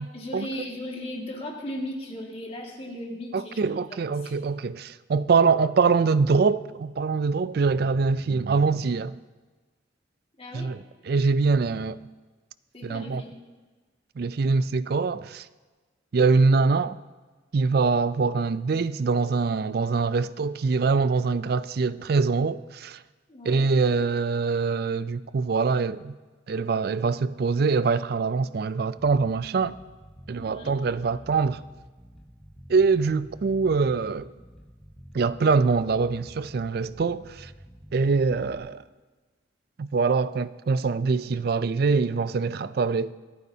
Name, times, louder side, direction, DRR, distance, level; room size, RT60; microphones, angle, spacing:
voice 1, 0.0-4.4 10.4-10.7 12.7-13.4 23.3-23.7 30.4-30.8 38.3-38.6, left 1 dB, 30° left, 2.0 m, -37 dB
voice 2, 3.3-9.2 10.5-10.8 11.1-12.0 12.8-13.2 14.2-15.4 16.1-17.0 17.5-23.0 23.5-26.2 26.5-29.7 30.3-31.6 32.7-34.3 35.1-37.5 37.9-38.8 39.8-43.1, right 4 dB, 50° right, 0.4 m, -24 dB
Bass guitar, 29.0-38.6, equal, ahead, 0.8 m, -48 dB
26.5 x 9.3 x 2.8 m
head